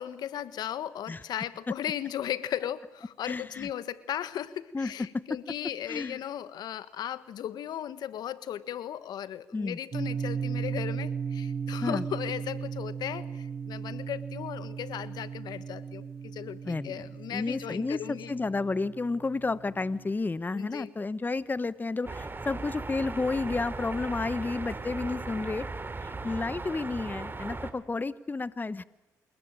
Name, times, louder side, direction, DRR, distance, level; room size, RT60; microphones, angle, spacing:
voice 1, 0.0-18.3 20.5-20.9, left 10 dB, 75° left, 15 dB, 1.4 m, -36 dB
voice 2, 3.2-3.7 4.7-5.2 5.9-6.2 9.5-9.8 11.8-12.0 16.6-17.0 17.3-25.7 26.0-28.8, left 3 dB, 25° left, 17 dB, 1.0 m, -31 dB
sound 1, 9.9-20.1, right 6 dB, 50° right, 7.5 m, -36 dB
sound 2, 22.0-27.7, right 3 dB, 30° right, 3.3 m, -37 dB
27.5 x 20.5 x 8.9 m, 0.94 s
supercardioid pair, 55°, 7 cm